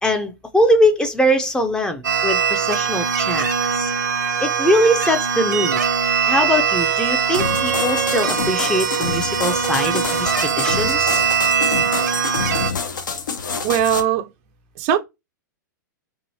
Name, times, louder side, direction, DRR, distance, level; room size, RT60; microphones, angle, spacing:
voice 1, 0.0-3.9 4.4-5.8 6.3-11.2, equal, 10° left, 0.5 m, -21 dB
sound 1, 2.0-12.7, right 7 dB, 70° right, 0.8 m, -21 dB
sound 2, 7.3-14.0, left 5 dB, 75° left, 0.7 m, -27 dB
voice 2, 13.6-14.3 14.8-15.0, right 9 dB, 40° right, 0.5 m, -19 dB
4.6 x 2.6 x 2.7 m
figure-of-eight pair, 105°, 10 cm